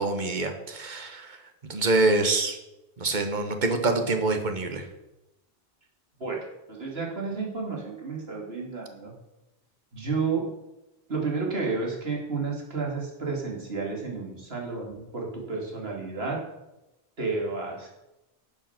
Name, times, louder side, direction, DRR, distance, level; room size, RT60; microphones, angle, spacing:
voice 1, 0.0-1.4 1.6-2.6 3.0-4.9, right 2 dB, 45° right, 6 dB, 1.4 m, -25 dB
voice 2, 6.2-9.1 9.9-10.5 11.1-16.4 17.2-17.9, right 4 dB, 70° right, -1 dB, 2.8 m, -31 dB
11.5 x 7.0 x 5.9 m, 0.94 s
omnidirectional pair, 1.1 m